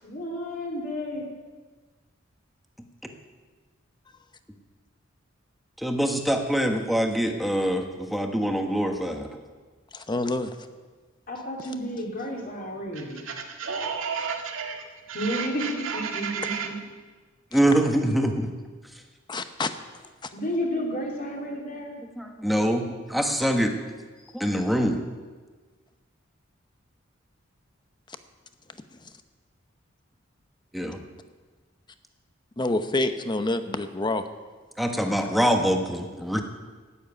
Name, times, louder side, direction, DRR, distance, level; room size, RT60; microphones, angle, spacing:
voice 1, 0.0-1.3 11.3-13.3 15.1-16.8 20.3-22.0 24.2-24.3, equal, 45° left, -1 dB, 3.3 m, -32 dB
voice 2, 5.8-9.3 17.5-18.5 22.2-23.7 24.3-25.0 30.7-31.0 34.8-36.4, equal, ahead, 3 dB, 1.3 m, -24 dB
voice 3, 9.9-10.6 17.5-17.6 19.3-19.7 20.2-20.3 29.0-29.1 32.6-34.3, left 2 dB, 25° left, 9 dB, 0.9 m, -27 dB
voice 4, 12.9-16.7, right 6 dB, 85° right, 3 dB, 1.9 m, -33 dB
12.5 x 9.3 x 9.2 m, 1.4 s
head